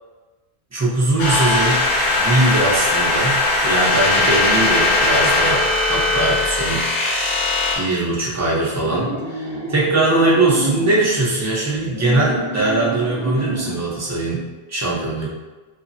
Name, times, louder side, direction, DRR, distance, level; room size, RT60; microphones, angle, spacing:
voice 1, 0.7-7.1 7.7-15.3, right 2 dB, 20° right, -5 dB, 0.5 m, -21 dB
sound 1, 1.2-7.7, left 2 dB, 55° left, 0.7 m, -19 dB
sound 2, 8.8-11.1 11.7-13.9, right 1 dB, 85° right, 0.9 m, -29 dB
3.1 x 2.0 x 2.6 m, 1.2 s
omnidirectional pair, 1.0 m